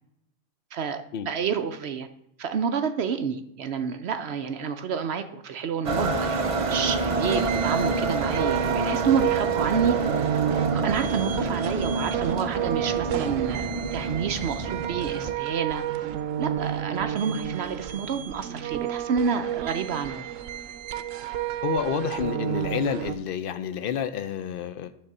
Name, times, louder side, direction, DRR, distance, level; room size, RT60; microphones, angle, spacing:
voice 1, 0.7-2.1 2.4-10.4 10.7-15.8 16.4-20.3, right 6 dB, 65° right, 9 dB, 0.8 m, -29 dB
sound 1, 5.8-15.3, right 3 dB, 45° right, 0.4 m, -28 dB
sound 2, 7.3-23.2, right 11 dB, 90° right, 0.9 m, -30 dB
voice 2, 21.6-24.9, left 8 dB, 55° left, 11 dB, 0.7 m, -29 dB
10.0 x 3.7 x 6.6 m, 0.77 s
omnidirectional pair, 1.3 m